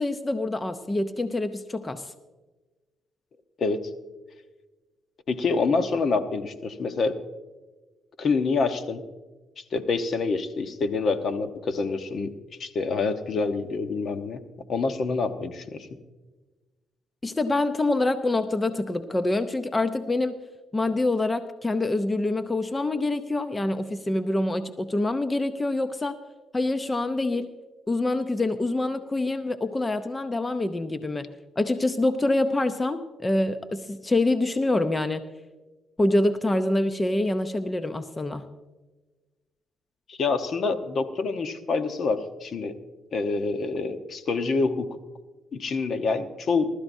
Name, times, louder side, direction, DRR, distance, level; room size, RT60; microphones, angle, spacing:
voice 1, 0.0-2.1 17.2-20.4 20.7-26.2 26.5-27.5 27.9-31.3 31.6-35.2 36.0-38.4, left 2 dB, 20° left, 10 dB, 0.7 m, -26 dB
voice 2, 5.3-7.2 8.2-9.0 9.6-12.3 12.6-14.4 14.7-15.9 40.1-42.8 43.1-44.9 45.5-46.7, left 4 dB, 55° left, 8 dB, 1.0 m, -26 dB
19.5 x 13.0 x 2.7 m, 1.2 s
cardioid pair, 90°, 0 cm